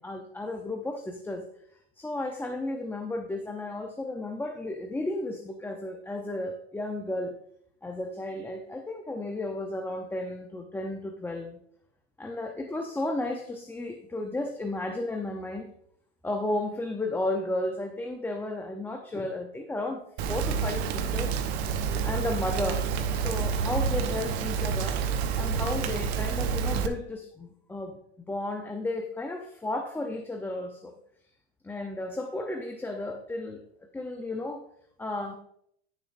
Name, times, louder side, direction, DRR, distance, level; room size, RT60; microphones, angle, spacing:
voice 1, 0.0-1.4 2.0-7.4 7.8-11.6 12.2-15.7 16.2-20.0 20.3-21.4 22.0-22.9 23.2-25.0 25.4-28.0 28.3-30.9 31.6-33.6 33.9-34.6 35.0-35.3, left 2 dB, 5° left, 4 dB, 0.6 m, -33 dB
Rain, 20.2-26.9, right 6 dB, 70° right, 1.0 m, -28 dB
10.0 x 7.3 x 2.6 m, 0.69 s
supercardioid pair, 115°, 33 cm